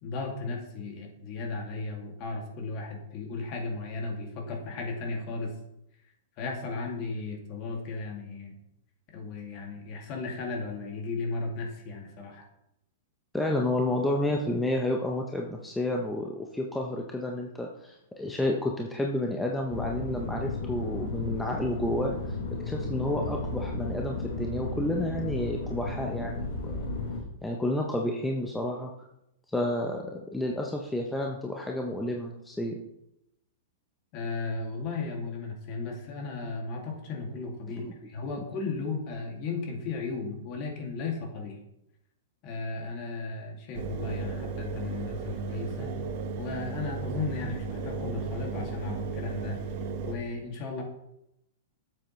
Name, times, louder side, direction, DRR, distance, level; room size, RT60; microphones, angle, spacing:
voice 1, 0.0-5.5 6.4-8.6 9.1-12.5 34.1-41.6 42.4-46.0 46.3-49.6 50.0-50.8, left 3 dB, 40° left, 1 dB, 2.3 m, -35 dB
voice 2, 13.3-22.1 22.7-26.8 27.4-28.9 29.5-32.8 37.8-37.9, left 1 dB, 5° left, 0 dB, 0.7 m, -30 dB
sound 1, 19.7-27.2, left 2 dB, 70° left, 3.6 m, -34 dB
Engine, 43.7-50.1, right 4 dB, 50° right, 1.2 m, -35 dB
9.7 x 7.6 x 3.2 m, 0.82 s
hypercardioid pair, 145°, 0 cm